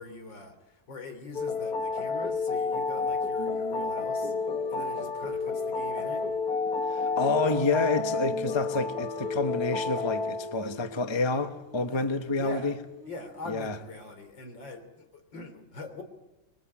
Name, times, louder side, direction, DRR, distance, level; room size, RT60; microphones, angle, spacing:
voice 1, 0.0-4.3 4.7-6.3 11.9-12.0 12.4-12.7 13.1-16.0, left 2 dB, 75° left, 4.1 m, -43 dB
sound 1, 1.3-10.6, left 4 dB, 50° left, 2.0 m, -30 dB
Singing, 3.4-7.7 8.0-14.0, right 3 dB, 50° right, 1.3 m, -45 dB
voice 2, 6.9-12.7 13.5-13.8, left 3 dB, 15° left, 1.1 m, -28 dB
25.5 x 22.5 x 8.7 m
omnidirectional pair, 2.1 m